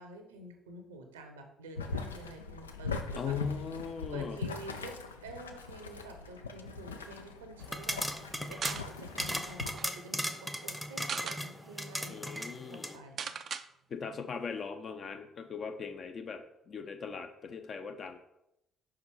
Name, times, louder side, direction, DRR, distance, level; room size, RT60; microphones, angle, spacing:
voice 1, 0.0-3.4 4.1-5.0 5.2-10.3 10.6-13.3, right 2 dB, 75° right, 5 dB, 0.8 m, -49 dB
Boiling, 1.8-9.7, left 4 dB, 80° left, 0.4 m, -41 dB
voice 2, 3.2-4.4 12.1-13.0 13.9-18.2, left 6 dB, 45° left, 6 dB, 0.7 m, -39 dB
sound 1, 7.6-13.0, equal, 5° left, 0.8 m, -37 dB
sound 2, 8.6-8.9 9.3-9.4 9.7-9.9 10.8-11.4 11.9-12.0 12.3-12.4 13.2-13.7, right 7 dB, 45° right, 0.4 m, -38 dB
5.4 x 4.8 x 4.6 m, 0.83 s
figure-of-eight pair, 45°, 0 cm